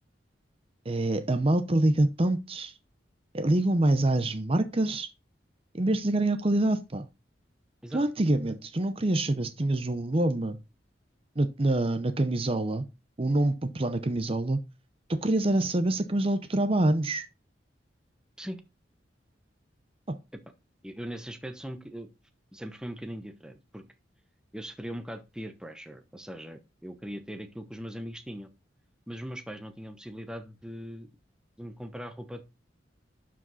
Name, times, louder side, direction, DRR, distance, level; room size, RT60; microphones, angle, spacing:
voice 1, 0.9-2.7 3.3-5.1 5.7-7.1 7.9-10.6 11.4-12.8 13.2-14.6 15.2-17.3 20.1-20.2, right 1 dB, 30° right, 0.7 m, -26 dB
voice 2, 20.8-22.1 22.5-23.8 24.5-28.5 29.1-31.1 31.6-32.4, equal, 5° right, 0.9 m, -40 dB
11.5 x 5.0 x 4.0 m
head